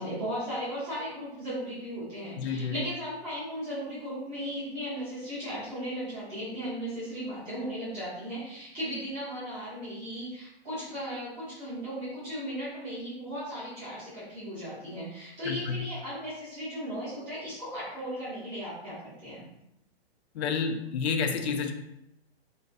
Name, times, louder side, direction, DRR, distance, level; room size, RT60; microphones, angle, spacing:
voice 1, 0.0-19.4, equal, 10° right, -12 dB, 0.5 m, -36 dB
voice 2, 2.3-2.8 15.5-15.9 20.3-21.7, left 5 dB, 90° left, 6 dB, 0.5 m, -30 dB
2.4 x 2.3 x 2.4 m, 0.82 s
hypercardioid pair, 175°, 32 cm